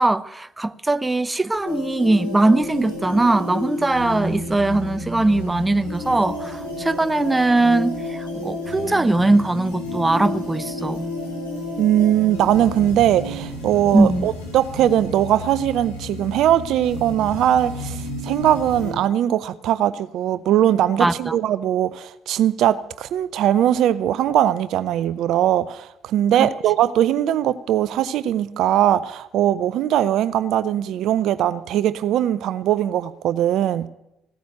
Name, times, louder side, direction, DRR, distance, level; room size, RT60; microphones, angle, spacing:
voice 1, 0.0-11.0 13.9-14.3 21.0-21.4 26.4-26.5, right 2 dB, 15° right, 0.7 m, -20 dB
sound 1, 1.6-18.9, left 1 dB, 90° left, 3.5 m, -31 dB
voice 2, 11.8-33.9, right 11 dB, 60° right, 0.5 m, -20 dB
16.0 x 9.4 x 9.2 m
hypercardioid pair, 50°, 0 cm